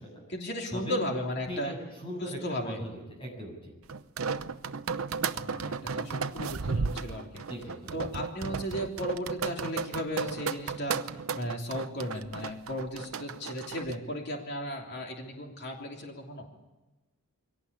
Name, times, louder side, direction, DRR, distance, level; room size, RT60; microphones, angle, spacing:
voice 1, 0.3-1.7 2.2-2.8 5.3-7.4 7.9-11.0 11.3-16.5, equal, 50° left, 1 dB, 3.3 m, -35 dB
voice 2, 1.5-2.4 2.6-3.7 7.5-8.0, equal, 25° left, 1 dB, 7.6 m, -39 dB
sound 1, 3.9-14.0, right 5 dB, 75° right, 0.8 m, -34 dB
23.5 x 18.0 x 8.6 m, 1.1 s
head